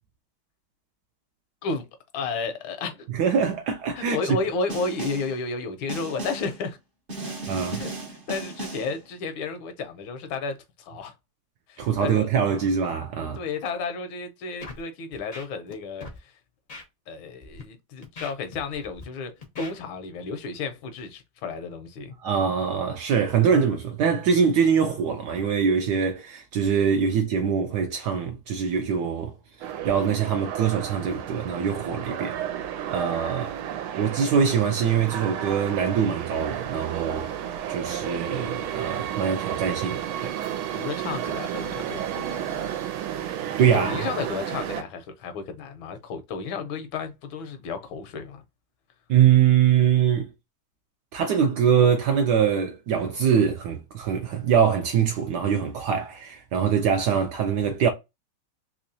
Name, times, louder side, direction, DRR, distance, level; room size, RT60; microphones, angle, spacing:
voice 1, 2.1-3.1 3.9-6.8 7.2-7.9 8.3-11.1 11.7-12.3 13.2-16.3 17.1-22.1 40.7-42.7 43.7-48.4, left 4 dB, 80° left, 1.4 m, -32 dB
voice 2, 3.1-4.4 7.5-7.8 11.8-13.4 22.2-29.3 29.8-32.4 32.9-33.6 34.0-37.4 37.7-40.3 43.6-43.9 49.1-50.3 51.1-57.9, right 7 dB, 75° right, 1.0 m, -23 dB
Snare drum, 4.7-5.4 5.9-6.6 7.1-9.0, right 2 dB, 45° right, 0.7 m, -35 dB
Scratching (performance technique), 14.6-14.8 15.1-15.7 16.0-16.2 16.7-16.8 17.4-17.6 18.0-19.0 19.4-19.7, left 3 dB, 55° left, 0.5 m, -41 dB
sound 1, 29.6-44.8, right 10 dB, 90° right, 1.5 m, -32 dB
3.6 x 2.9 x 2.6 m
omnidirectional pair, 2.3 m